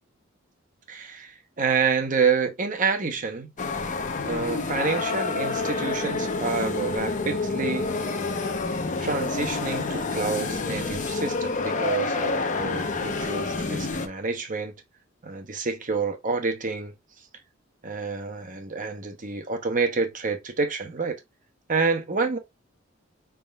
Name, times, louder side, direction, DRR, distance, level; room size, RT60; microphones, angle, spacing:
voice 1, 0.9-3.5 4.3-7.9 9.0-14.7 15.2-16.9 17.8-21.2 21.7-22.4, right 4 dB, 40° right, 0.9 m, -28 dB
sound 1, 3.6-14.1, left 3 dB, 40° left, 0.6 m, -28 dB
5.2 x 3.6 x 2.3 m
head